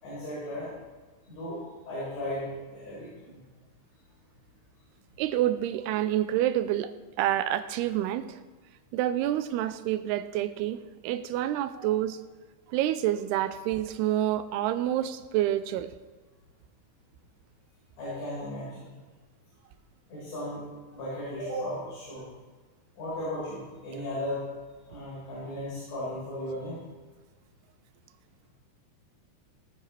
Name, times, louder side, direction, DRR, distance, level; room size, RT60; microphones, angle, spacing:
voice 1, 0.0-0.7 1.3-1.6 1.9-3.4 18.0-18.9 20.1-20.6 20.9-22.2 23.0-24.5 24.9-26.8, left 1 dB, 80° left, -10 dB, 6.9 m, -36 dB
voice 2, 5.2-8.4 8.9-12.2 12.7-15.9, right 12 dB, 90° right, 12 dB, 2.7 m, -28 dB
18.5 x 9.6 x 3.3 m, 1.3 s
omnidirectional pair, 4.6 m